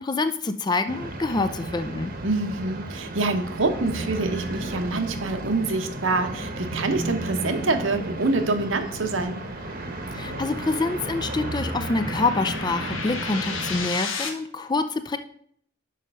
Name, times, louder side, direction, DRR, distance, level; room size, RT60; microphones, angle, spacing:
voice 1, 0.0-2.1 10.1-15.2, left 3 dB, 20° left, 10 dB, 0.4 m, -26 dB
sound 1, 0.9-13.9, right 2 dB, 45° right, 1.0 m, -33 dB
voice 2, 2.2-9.4, right 3 dB, 75° right, 7 dB, 0.9 m, -26 dB
sound 2, 7.4-14.3, left 5 dB, 85° left, 1.1 m, -36 dB
6.5 x 5.1 x 5.5 m, 0.65 s
head